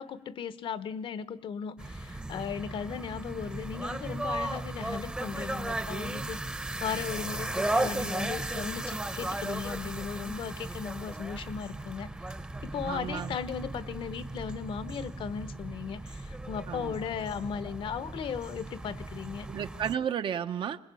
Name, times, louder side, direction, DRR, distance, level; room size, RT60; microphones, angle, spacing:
voice 1, 0.0-6.4 6.8-12.1 12.6-19.5, left 7 dB, 55° left, 15 dB, 1.0 m, -37 dB
sound 1, 1.8-20.0, right 2 dB, 10° right, 0.9 m, -36 dB
voice 2, 12.8-13.4 16.7-16.9 19.5-20.8, right 8 dB, 50° right, 10 dB, 0.9 m, -33 dB
22.5 x 20.5 x 8.4 m, 0.70 s
cardioid pair, 170°, 10 cm